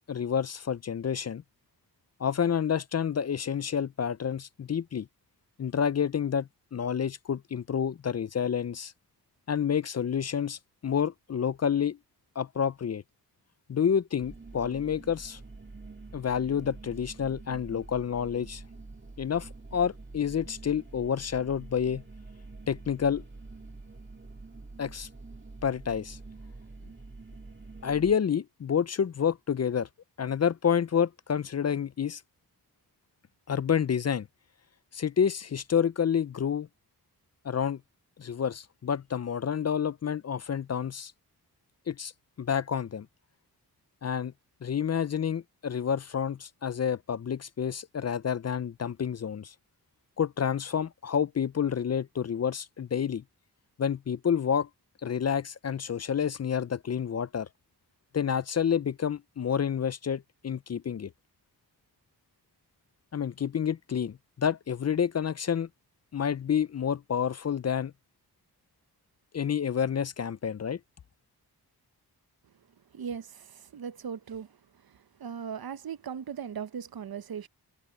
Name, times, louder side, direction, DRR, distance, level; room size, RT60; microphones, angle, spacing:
voice 1, 0.1-1.4 2.2-5.1 5.6-8.9 9.5-12.0 12.4-13.0 13.7-15.4 16.1-18.6 19.2-22.0 22.7-23.2 24.8-25.1 25.6-26.2 27.8-29.9 30.2-32.2 33.5-34.3 34.9-36.7 37.4-37.8 38.2-41.1 41.9-42.1 42.4-43.1 44.0-44.3 44.6-49.5 50.2-53.2 53.8-54.7 55.0-57.5 58.1-61.1 63.1-65.7 66.1-67.9 69.3-70.8, left 7 dB, 40° left, 0.4 m, -29 dB
sound 1, 14.2-28.2, right 3 dB, 30° right, 2.6 m, -46 dB
voice 2, 72.9-74.6 74.8-77.5, right 7 dB, 65° right, 0.8 m, -38 dB
wide cardioid pair, 90°, 39 cm